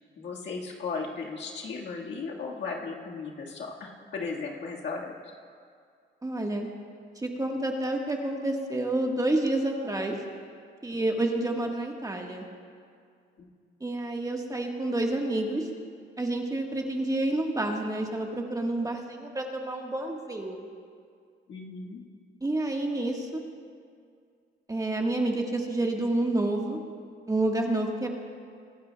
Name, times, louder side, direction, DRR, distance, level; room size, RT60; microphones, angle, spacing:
voice 1, 0.2-5.1 13.4-13.5 21.5-22.0, left 4 dB, 65° left, -1 dB, 1.7 m, -36 dB
voice 2, 6.2-6.7 7.2-10.2 10.8-12.4 13.8-15.7 16.2-20.7 22.4-23.4 24.7-26.8 27.3-28.1, right 2 dB, 15° right, 1 dB, 1.4 m, -29 dB
23.5 x 12.0 x 2.3 m, 2.2 s
cardioid pair, 90°, 20 cm